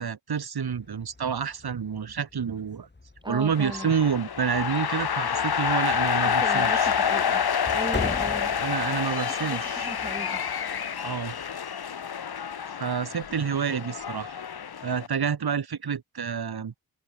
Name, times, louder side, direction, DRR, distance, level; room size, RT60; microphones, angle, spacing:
voice 1, 0.0-2.9 3.3-6.9 8.6-9.9 11.0-11.4 12.8-14.4 14.8-16.7, right 7 dB, 90° right, 4.6 m, -28 dB
sound 1, 0.6-11.5, left 3 dB, 30° left, 5.8 m, -42 dB
voice 2, 3.2-3.9 6.2-7.4 7.7-8.5 9.4-10.4, right 1 dB, 10° right, 6.9 m, -37 dB
sound 2, 3.5-15.1, left 7 dB, 85° left, 2.5 m, -28 dB
open air
wide cardioid pair, 120°, 37 cm